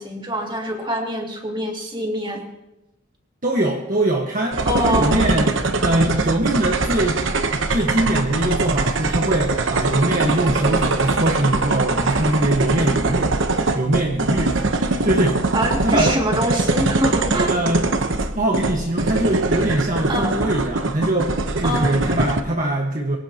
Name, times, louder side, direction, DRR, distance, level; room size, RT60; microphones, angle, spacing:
voice 1, 0.0-2.4 4.6-5.2 15.5-17.5 20.1-20.3 21.6-21.9, equal, 25° right, 0 dB, 2.5 m, -24 dB
voice 2, 3.4-7.2 7.5-13.3 13.7-16.2 17.5-17.8 18.3-23.2, right 1 dB, 45° right, 0 dB, 1.5 m, -22 dB
sound 1, 4.5-22.4, right 3 dB, 75° right, 1.0 m, -22 dB
23.0 x 17.0 x 3.0 m, 0.91 s
head